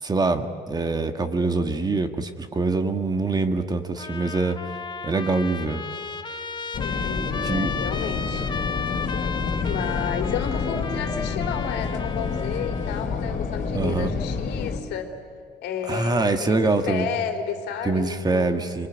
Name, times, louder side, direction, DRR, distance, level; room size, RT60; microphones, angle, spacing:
voice 1, 0.0-4.6 5.0-5.8 7.4-7.7 13.7-14.1 15.9-17.1 17.8-18.9, right 3 dB, 25° right, 8 dB, 1.7 m, -24 dB
Trumpet, 4.0-13.1, left 5 dB, 25° left, 1.2 m, -34 dB
sound 1, 6.7-14.8, left 5 dB, 45° left, 3.3 m, -28 dB
voice 2, 6.8-8.4 9.6-15.1 15.6-18.7, left 7 dB, 80° left, 4 dB, 3.1 m, -32 dB
25.5 x 23.5 x 9.1 m, 2.2 s
cardioid pair, 110°, 17 cm